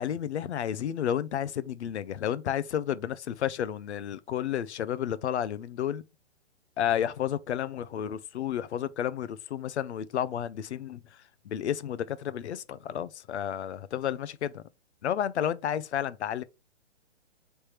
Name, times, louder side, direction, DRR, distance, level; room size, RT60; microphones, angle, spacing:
voice 1, 0.0-6.0 6.8-11.0 11.5-14.6 15.0-16.4, left 10 dB, 70° left, 0.6 m, -31 dB
3.4 x 3.2 x 4.3 m
hypercardioid pair, 160°, 35 cm